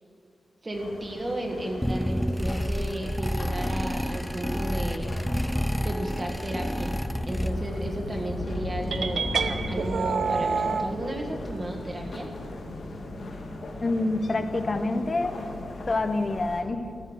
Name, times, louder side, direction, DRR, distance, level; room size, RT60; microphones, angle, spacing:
voice 1, 0.6-5.2 5.8-7.0 7.3-9.3 9.7-12.3, right 1 dB, 25° right, 1 dB, 1.7 m, -33 dB
sound 1, 0.7-16.6, left 2 dB, 70° left, 2.1 m, -37 dB
sound 2, 1.8-7.9, equal, ahead, 0.3 m, -29 dB
sound 3, 8.9-10.9, right 5 dB, 65° right, 0.8 m, -27 dB
voice 2, 13.8-15.4 15.9-16.9, left 2 dB, 35° left, 8 dB, 1.0 m, -27 dB
14.5 x 11.5 x 8.1 m, 2.5 s
wide cardioid pair, 145°, 0 cm